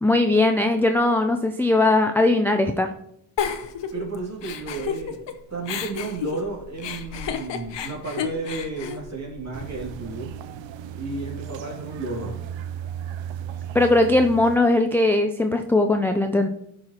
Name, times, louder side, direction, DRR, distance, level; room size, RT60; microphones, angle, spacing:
voice 1, 0.0-2.9 13.7-16.5, left 2 dB, 5° left, 5 dB, 0.4 m, -19 dB
Giggle, 3.4-5.3 5.6-9.9, left 7 dB, 65° left, 0.8 m, -31 dB
voice 2, 3.9-5.2 5.5-10.3 10.9-12.4, right 3 dB, 35° right, -3 dB, 2.6 m, -32 dB
sound 1, 9.5-14.6, right 9 dB, 75° right, 0.5 m, -35 dB
11.5 x 4.8 x 2.9 m, 0.76 s
cardioid pair, 80°, 46 cm